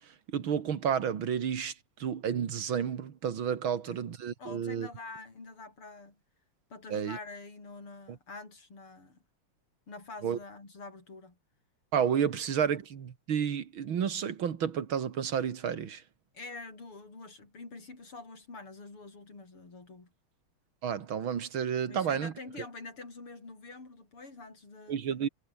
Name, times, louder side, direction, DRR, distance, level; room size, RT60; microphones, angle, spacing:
voice 1, 0.3-1.7 2.0-4.9 6.9-7.2 8.1-8.2 10.2-10.4 11.9-16.0 20.8-22.3 24.9-25.3, right 8 dB, 70° right, 2.5 m, -31 dB
voice 2, 3.7-4.0 4.4-6.2 6.7-9.2 9.9-11.4 12.3-12.7 16.3-20.1 21.9-25.0, left 3 dB, 85° left, 6.9 m, -46 dB
omnidirectional pair, 2.4 m